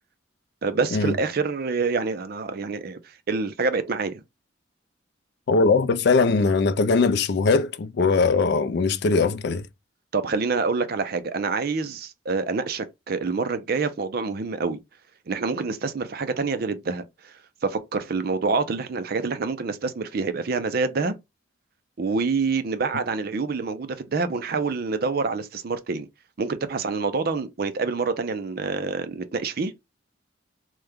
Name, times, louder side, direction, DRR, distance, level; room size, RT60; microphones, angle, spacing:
voice 1, 0.6-3.0 3.3-4.2 10.1-14.8 15.3-17.3 17.6-21.1 22.0-26.1 26.4-29.7, right 4 dB, 50° right, 0.4 m, -26 dB
voice 2, 5.5-9.7, left 4 dB, 55° left, 0.4 m, -20 dB
3.1 x 2.2 x 3.5 m
head